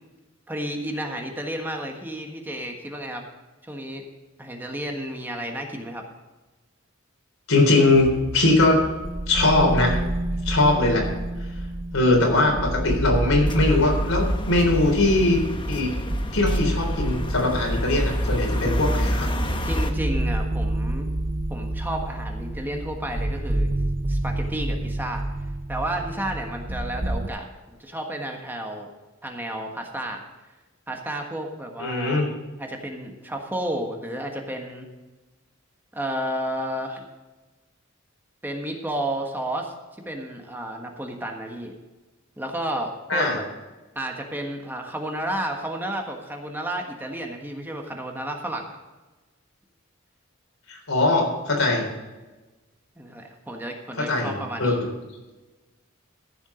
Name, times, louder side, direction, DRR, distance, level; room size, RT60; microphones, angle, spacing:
voice 1, 0.5-3.2 3.6-4.0 4.4-6.0 19.6-21.1 21.5-23.7 24.1-25.2 25.7-28.9 29.2-30.2 30.9-32.2 32.6-34.9 35.9-37.0 38.4-39.7 40.0-41.7 42.4-43.5 43.9-48.7 53.0-54.8, right 1 dB, 10° right, 2 dB, 1.4 m, -32 dB
voice 2, 7.5-8.8 9.3-10.0 10.4-11.1 11.9-15.4 15.7-15.9 16.3-19.3 31.8-32.3 43.1-43.4 50.7-51.8 54.0-54.3 54.6-54.9, left 2 dB, 80° left, 1 dB, 3.8 m, -21 dB
sound 1, 7.9-27.3, right 1 dB, 35° right, 0.9 m, -29 dB
sound 2, 13.5-19.9, equal, 25° left, 1.1 m, -28 dB
14.5 x 7.3 x 5.0 m, 1.2 s
head